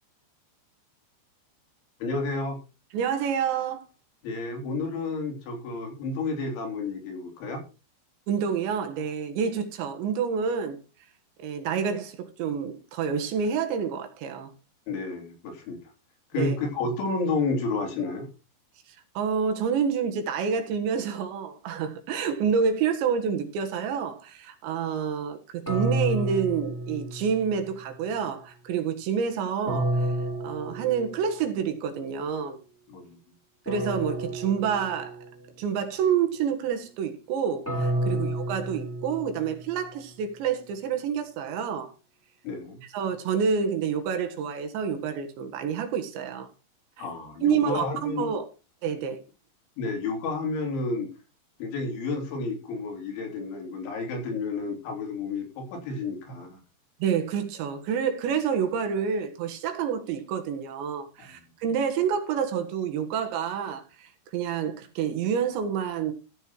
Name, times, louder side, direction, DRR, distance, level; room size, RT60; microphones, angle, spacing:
voice 1, 2.0-2.6 4.2-7.6 14.9-15.8 16.3-18.3 32.9-33.2 38.1-38.2 42.4-42.8 47.0-48.3 49.8-51.1 51.6-56.6 61.2-61.3, left 3 dB, 80° left, 5.5 m, -31 dB
voice 2, 2.9-3.9 8.3-10.8 11.4-14.5 16.4-16.6 19.2-30.1 30.4-32.6 33.7-35.3 35.6-41.9 42.9-46.5 47.0-47.1 47.4-48.5 48.8-49.2 57.0-66.1, right 7 dB, 75° right, 3.7 m, -28 dB
sound 1, 25.7-27.7 29.7-31.5 33.7-35.5 37.7-39.9, right 1 dB, 5° left, 4.0 m, -30 dB
14.0 x 6.7 x 4.6 m
omnidirectional pair, 5.4 m